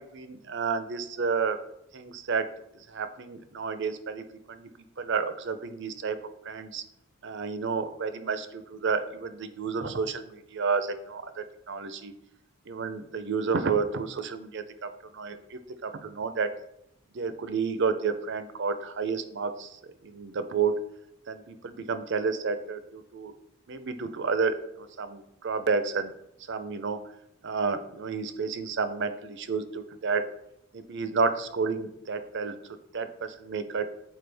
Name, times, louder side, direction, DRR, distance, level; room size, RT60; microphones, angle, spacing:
voice 1, 0.1-1.6 1.9-2.5 2.9-4.7 5.0-6.2 6.4-6.8 7.2-12.1 12.7-16.5 17.1-19.7 20.0-20.7 21.3-23.3 23.7-26.1 26.5-27.0 27.4-30.2 30.7-32.5 32.9-33.9, right 5 dB, 55° right, 10 dB, 0.6 m, -30 dB
7.8 x 4.6 x 3.4 m, 0.80 s
head